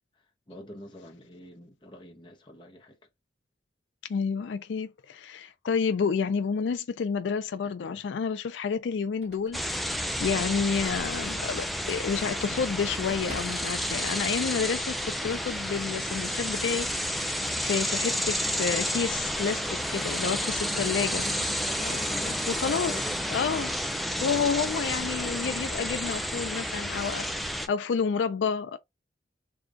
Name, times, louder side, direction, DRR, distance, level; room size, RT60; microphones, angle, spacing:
voice 1, 0.5-3.0 7.6-8.0 21.7-23.6 24.1-24.3, left 1 dB, 25° left, 1.0 m, -45 dB
voice 2, 4.1-9.6 9.9-21.3 22.5-22.9 23.3-23.7 24.2-28.8, left 6 dB, 85° left, 0.4 m, -30 dB
sound 1, 8.8-14.0, equal, 35° right, 1.6 m, -52 dB
sound 2, 9.5-27.7, equal, ahead, 0.3 m, -31 dB
3.4 x 2.3 x 3.8 m
head